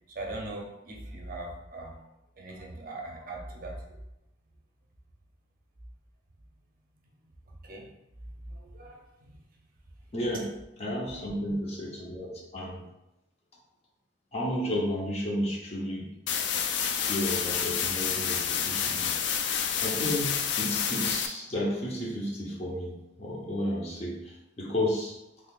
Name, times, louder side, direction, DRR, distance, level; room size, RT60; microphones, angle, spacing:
voice 1, 0.1-2.0 2.4-4.0 7.6-7.9 8.4-9.4 11.1-11.3, right 2 dB, 50° right, 0 dB, 0.6 m, -40 dB
voice 2, 10.1-10.5 10.8-12.8 14.3-16.1 16.8-19.1 19.8-25.2, left 1 dB, 35° left, -3 dB, 0.8 m, -32 dB
sound 1, 16.3-21.3, left 7 dB, 80° left, 0.4 m, -29 dB
3.6 x 3.2 x 2.4 m, 0.91 s
head